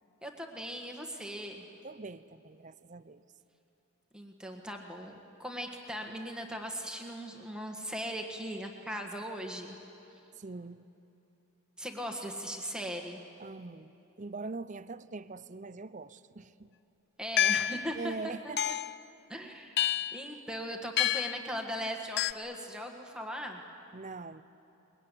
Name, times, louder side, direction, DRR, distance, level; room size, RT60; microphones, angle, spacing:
voice 1, 0.2-1.6 4.1-9.8 11.8-13.2 17.2-18.5 19.3-19.8 20.1-23.6, equal, 5° right, 1.6 m, -39 dB
voice 2, 1.8-3.2 10.4-10.8 13.4-13.9 14.2-16.7 18.0-18.9 23.9-24.4, right 3 dB, 35° right, 0.6 m, -42 dB
sound 1, 17.4-17.9 18.6-19.0 19.8-20.2 21.0-21.4 22.2-22.3, left 11 dB, 45° left, 0.5 m, -28 dB
23.0 x 21.5 x 9.9 m
head